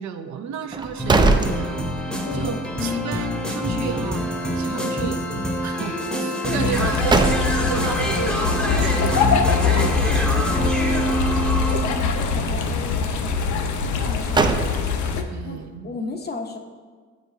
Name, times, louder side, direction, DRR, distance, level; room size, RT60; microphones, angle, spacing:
voice 1, 0.0-4.3 4.6-5.2 5.6-7.2 7.6-9.5 9.7-10.4 15.3-15.9, right 7 dB, 65° right, 6 dB, 0.6 m, -32 dB
sound 1, 0.7-2.3 2.7-2.8 6.6-7.9 13.9-15.2, right 3 dB, 15° right, 0.3 m, -22 dB
sound 2, 1.0-12.1, equal, 5° left, 0.8 m, -26 dB
voice 2, 2.2-2.9 6.4-6.9 10.1-11.2 11.7-13.4 13.9-14.9 15.4-16.6, left 3 dB, 35° left, 4 dB, 0.7 m, -35 dB
sound 3, 6.6-15.2, left 5 dB, 70° left, 0.6 m, -23 dB
7.9 x 5.0 x 2.7 m, 1.5 s
cardioid pair, 90°, 30 cm